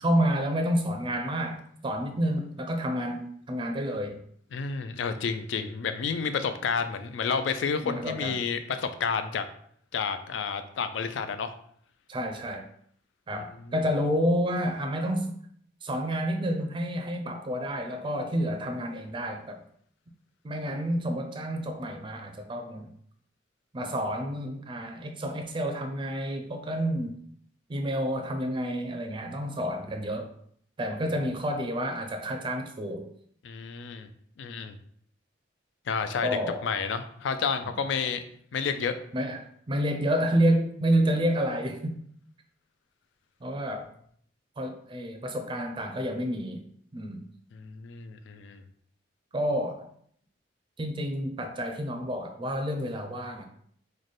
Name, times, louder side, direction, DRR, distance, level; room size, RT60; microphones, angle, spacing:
voice 1, 0.0-3.2 3.5-4.2 7.8-8.4 12.1-12.6 13.3-15.3 15.8-19.6 20.4-22.9 23.7-27.1 27.7-30.3 30.8-33.1 36.2-36.7 37.6-37.7 39.1-42.0 43.4-43.9 44.6-46.6 46.9-47.2 49.3-49.9 50.8-53.5, equal, 25° right, 5 dB, 0.4 m, -29 dB
voice 2, 4.5-9.4 9.9-11.5 13.3-13.7 33.4-34.1 34.4-34.8 35.9-38.2 38.5-39.0 47.5-48.6, left 5 dB, 75° left, 9 dB, 0.4 m, -30 dB
3.2 x 2.1 x 3.9 m, 0.64 s
head